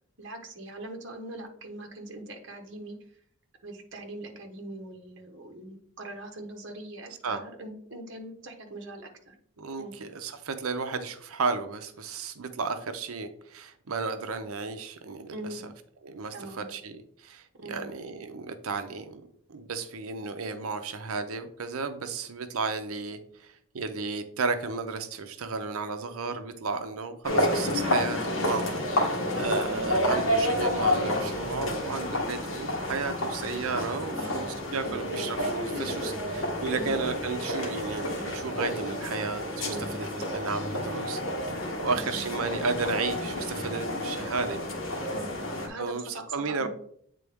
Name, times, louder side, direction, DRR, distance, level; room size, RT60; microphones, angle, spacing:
voice 1, 0.2-3.0 3.6-9.3 9.8-9.9 15.3-15.6 16.3-16.7 17.6-17.9 34.1-35.0 36.7-37.0 39.7-40.3 41.9-42.3 45.1-45.3 45.6-46.7, right 1 dB, 55° right, 3 dB, 1.1 m, -41 dB
voice 2, 9.6-15.6 16.0-41.2 41.8-44.6 45.8-46.7, right 4 dB, 75° right, 8 dB, 0.6 m, -33 dB
sound 1, 27.2-45.7, left 1 dB, 65° left, 1.6 m, -30 dB
8.3 x 3.8 x 3.5 m, 0.65 s
head